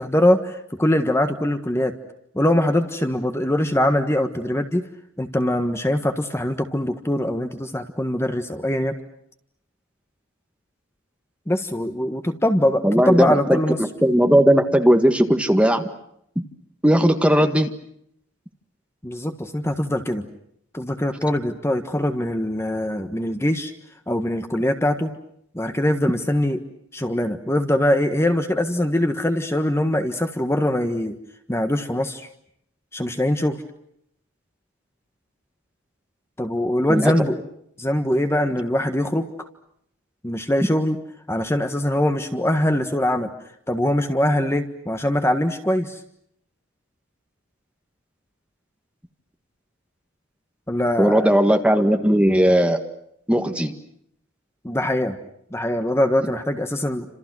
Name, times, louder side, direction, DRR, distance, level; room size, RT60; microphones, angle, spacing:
voice 1, 0.0-1.9 2.3-4.9 5.2-8.9 11.5-13.9 19.0-20.3 20.7-23.7 24.1-25.2 25.5-26.6 26.9-31.2 31.5-32.3 32.9-33.6 36.4-37.4 37.8-39.3 40.2-41.0 41.3-43.3 43.7-46.0 50.7-51.3 54.6-55.2 55.5-57.1, left 1 dB, 15° left, 7 dB, 1.5 m, -22 dB
voice 2, 12.8-13.6 14.0-15.8 16.8-17.7 36.9-37.1 51.0-52.8 53.3-53.7, equal, 5° right, 6 dB, 1.7 m, -17 dB
29.5 x 27.0 x 6.2 m, 0.72 s
head